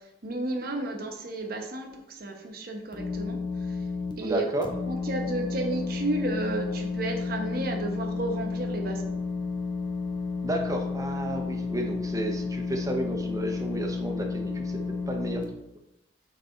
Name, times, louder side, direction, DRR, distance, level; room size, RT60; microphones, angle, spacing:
voice 1, 0.2-3.4 4.2-4.4 4.8-9.1, right 2 dB, 55° right, 3 dB, 0.9 m, -32 dB
sound 1, 2.9-4.1 4.6-15.4, left 4 dB, 25° left, 0.7 m, -32 dB
voice 2, 4.2-4.7 10.4-15.4, right 1 dB, 20° right, 2 dB, 0.8 m, -32 dB
6.1 x 4.1 x 3.8 m, 0.86 s
head